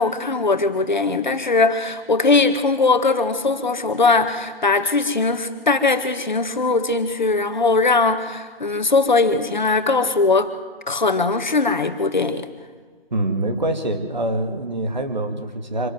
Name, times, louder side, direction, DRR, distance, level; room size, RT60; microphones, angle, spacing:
voice 1, 0.0-10.5 10.9-12.5, left 3 dB, 50° left, 9 dB, 1.8 m, -20 dB
voice 2, 13.1-15.9, right 1 dB, 45° right, 7 dB, 2.6 m, -25 dB
25.5 x 12.5 x 9.3 m, 1.5 s
figure-of-eight pair, 170°, 30 cm